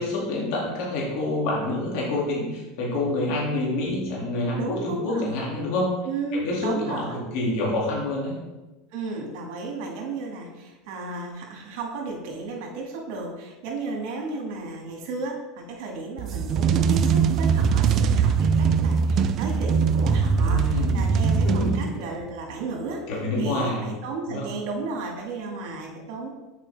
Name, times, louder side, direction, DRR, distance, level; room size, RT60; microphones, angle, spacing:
voice 1, 0.0-5.9 6.4-7.1 7.3-8.3 20.4-21.0 21.4-21.8 23.1-23.9 24.3-24.5, left 2 dB, 65° left, -4 dB, 2.3 m, -27 dB
voice 2, 4.6-5.6 6.0-7.3 8.9-23.0 23.4-26.3, right 3 dB, 65° right, 1 dB, 1.8 m, -33 dB
sound 1, 16.2-22.2, right 6 dB, 45° right, 0.3 m, -21 dB
7.5 x 4.7 x 3.4 m, 1.1 s
supercardioid pair, 115°, 0 cm